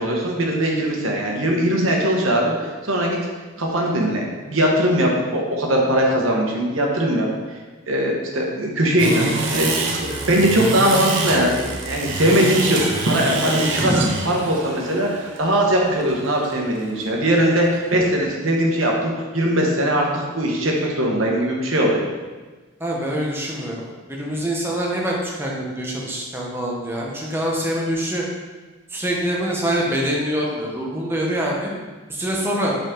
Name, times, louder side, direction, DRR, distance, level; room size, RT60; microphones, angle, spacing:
voice 1, 0.0-3.2 3.6-7.3 7.9-9.7 10.1-13.9 14.2-22.0, right 1 dB, 80° right, -1 dB, 1.2 m, -20 dB
sound 1, 9.0-18.2, right 3 dB, 60° right, 0.7 m, -27 dB
voice 2, 13.8-14.1 22.8-28.2 28.9-31.7 32.1-32.7, equal, 10° right, -3 dB, 0.9 m, -25 dB
5.2 x 5.0 x 3.7 m, 1.3 s
head